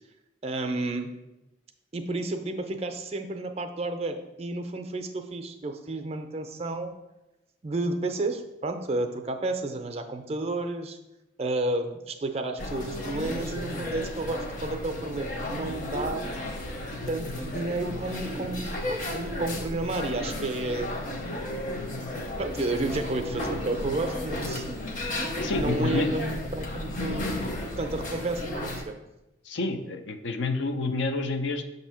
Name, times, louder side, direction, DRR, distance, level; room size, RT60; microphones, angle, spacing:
voice 1, 0.4-1.1 1.9-7.0 7.6-11.0 11.4-16.3 17.1-21.0 22.4-24.6 25.5-29.0, right 2 dB, 35° right, 6 dB, 0.4 m, -31 dB
sound 1, 12.6-28.8, left 1 dB, 45° left, 0.8 m, -33 dB
voice 2, 25.4-26.1 29.4-31.6, left 3 dB, 80° left, 7 dB, 0.5 m, -29 dB
6.5 x 2.7 x 5.6 m, 0.96 s
head